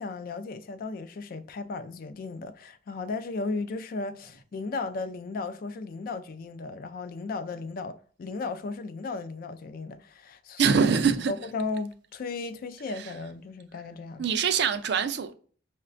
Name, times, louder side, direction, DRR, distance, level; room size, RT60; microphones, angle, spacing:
voice 1, 0.0-10.8 11.3-14.3, left 3 dB, 45° left, 0.3 m, -35 dB
voice 2, 10.6-11.3 13.0-13.1 14.2-15.3, right 6 dB, 55° right, 0.4 m, -24 dB
5.6 x 2.2 x 2.5 m
head